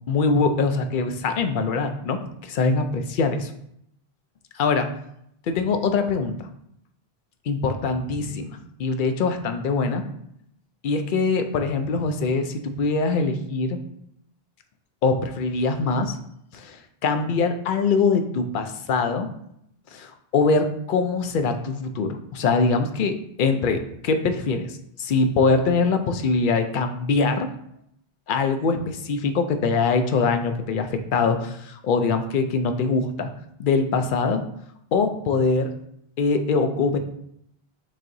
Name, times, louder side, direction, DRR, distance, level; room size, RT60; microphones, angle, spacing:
voice 1, 0.1-3.5 4.5-4.9 5.5-6.5 7.5-10.0 10.8-13.8 15.0-16.2 16.5-19.3 19.9-27.5 28.3-33.3 33.6-34.4 34.9-35.7 36.2-37.0, left 4 dB, 60° left, 7 dB, 0.6 m, -23 dB
7.2 x 2.8 x 2.6 m, 0.73 s
omnidirectional pair, 1.1 m